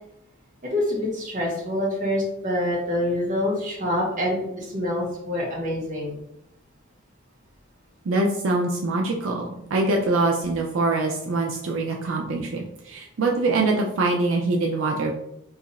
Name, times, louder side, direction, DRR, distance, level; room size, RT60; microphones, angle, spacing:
voice 1, 0.6-6.2, left 1 dB, 40° right, -3 dB, 1.0 m, -26 dB
voice 2, 8.1-15.1, right 2 dB, 75° right, 0 dB, 0.4 m, -24 dB
2.8 x 2.4 x 4.0 m, 0.80 s
head